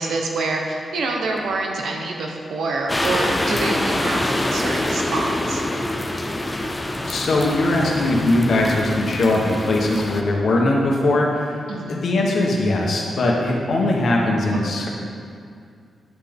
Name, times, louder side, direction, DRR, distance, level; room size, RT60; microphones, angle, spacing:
voice 1, 0.0-5.6 11.7-12.0 14.5-14.6, right 3 dB, 75° right, 1 dB, 0.9 m, -26 dB
sound 1, 2.9-10.2, left 1 dB, 10° left, 0.4 m, -25 dB
voice 2, 6.7-11.6 11.9-14.9, left 2 dB, 50° left, -1 dB, 1.1 m, -20 dB
9.1 x 5.8 x 3.6 m, 2.3 s
wide cardioid pair, 160°, 0 cm